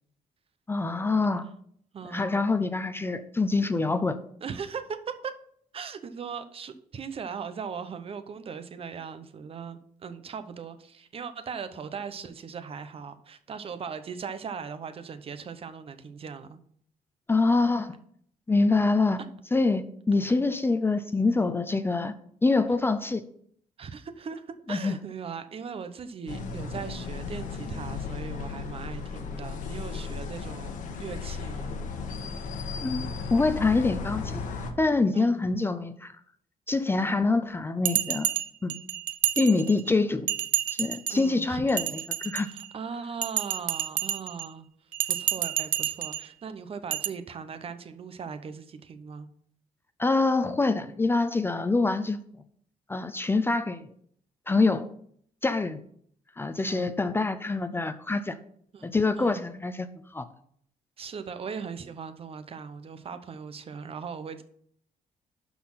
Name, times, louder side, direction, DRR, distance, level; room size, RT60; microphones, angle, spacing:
voice 1, 0.7-1.5 2.1-4.2 17.3-18.0 18.5-19.2 19.5-22.1 22.4-23.2 24.7-24.9 32.8-34.4 34.8-36.1 36.7-38.3 38.6-38.7 39.4-40.3 40.7-41.9 42.2-42.5 50.0-52.2 52.9-53.8 54.5-54.9 55.4-55.8 56.4-58.4 58.8-60.3, left 3 dB, 15° left, 11 dB, 0.5 m, -25 dB
voice 2, 1.9-2.4 4.4-5.3 5.7-16.6 23.8-31.8 35.1-35.4 36.9-37.2 41.1-41.6 42.4-44.7 45.1-49.3 56.7-56.9 58.7-59.4 61.0-64.4, right 6 dB, 40° right, 10 dB, 0.9 m, -39 dB
sound 1, 26.3-34.7, left 5 dB, 65° left, 1.4 m, -35 dB
Bell, 37.9-39.9 40.3-41.3 41.7-42.7 43.2-44.5 44.9-46.3 46.9-47.1, right 11 dB, 75° right, 0.6 m, -29 dB
12.0 x 4.3 x 5.6 m, 0.64 s
cardioid pair, 130°, 14 cm